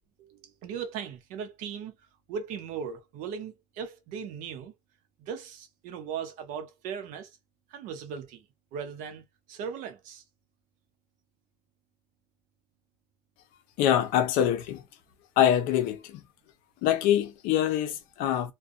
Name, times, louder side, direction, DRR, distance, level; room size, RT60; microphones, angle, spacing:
voice 1, 0.2-1.9 2.3-4.7 5.2-7.3 7.7-8.4 8.7-10.2, right 7 dB, 65° right, 0.7 m, -38 dB
voice 2, 13.8-14.8 15.4-16.2 16.8-18.5, left 10 dB, 75° left, 0.6 m, -24 dB
2.6 x 2.2 x 2.4 m
cardioid pair, 175°, 15 cm